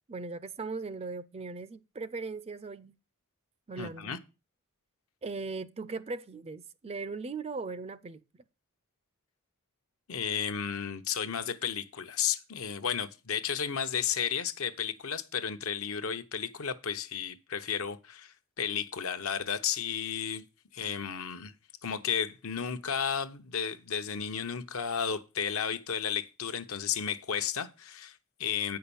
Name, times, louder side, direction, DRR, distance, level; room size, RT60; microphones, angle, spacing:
voice 1, 0.1-3.0 3.7-4.2 5.2-8.2, right 4 dB, 25° right, 0.4 m, -38 dB
voice 2, 3.8-4.2 10.1-20.4 20.7-21.5 21.8-28.8, left 7 dB, 65° left, 0.9 m, -33 dB
8.9 x 5.7 x 7.0 m
head